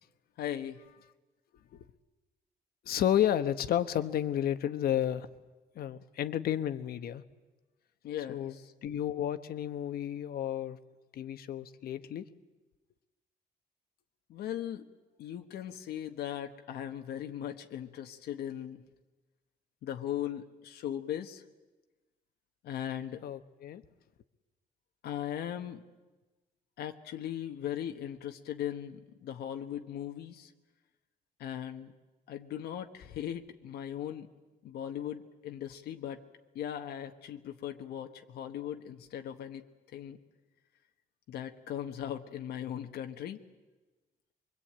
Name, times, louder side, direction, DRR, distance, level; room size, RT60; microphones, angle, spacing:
voice 1, 0.4-0.8 8.0-8.7 14.3-14.9 15.2-18.8 19.8-21.4 22.6-23.2 25.0-25.8 26.8-30.5 31.4-31.9 32.3-34.3 34.6-36.2 36.5-39.6 39.9-40.2 41.3-43.4, left 10 dB, 85° left, 5 dB, 1.4 m, -38 dB
voice 2, 2.8-5.3 5.7-7.2 8.3-8.5 8.8-10.8 11.1-12.3 23.2-23.8, left 10 dB, 70° left, 11 dB, 1.2 m, -31 dB
24.5 x 23.5 x 8.9 m, 1.2 s
cardioid pair, 140°, 16 cm